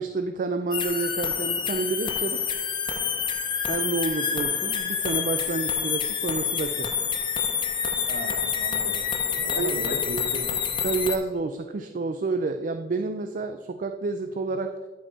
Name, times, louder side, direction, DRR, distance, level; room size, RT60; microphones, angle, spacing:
voice 1, 0.0-2.4 3.7-6.9 9.6-9.7 10.8-14.7, right 3 dB, 45° right, 8 dB, 0.4 m, -29 dB
sound 1, 0.7-11.2, left 7 dB, 25° left, 0.6 m, -27 dB
voice 2, 8.1-10.5, equal, 70° right, 4 dB, 1.3 m, -36 dB
10.5 x 4.5 x 4.3 m, 1.4 s
head